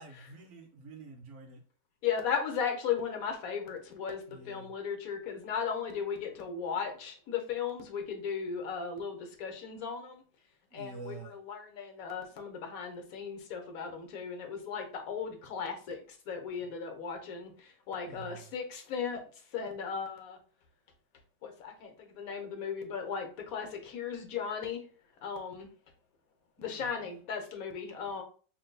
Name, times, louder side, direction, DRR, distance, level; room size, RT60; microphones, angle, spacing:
voice 1, 0.0-1.6 4.3-4.7 10.7-11.4 16.6-16.7 18.1-18.5 26.6-27.2, right 4 dB, 85° right, 5 dB, 0.6 m, -48 dB
voice 2, 2.0-10.2 10.7-19.2 19.5-20.4 21.4-24.8 25.2-25.7 26.6-28.2, left 6 dB, 60° left, 4 dB, 1.1 m, -36 dB
5.8 x 2.6 x 2.2 m, 0.40 s
omnidirectional pair, 1.9 m